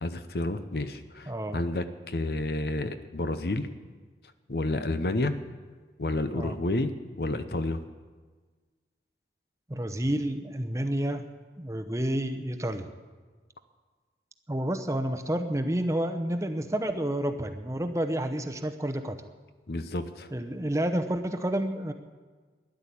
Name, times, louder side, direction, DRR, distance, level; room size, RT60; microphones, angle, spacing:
voice 1, 0.0-3.7 4.5-5.3 6.0-7.8 19.7-20.3, left 2 dB, 60° left, 10 dB, 0.8 m, -30 dB
voice 2, 1.3-1.6 6.3-6.6 9.7-11.2 11.6-12.9 14.5-19.2 20.3-21.9, right 1 dB, 15° right, 8 dB, 0.8 m, -29 dB
12.5 x 11.0 x 8.4 m, 1.4 s
head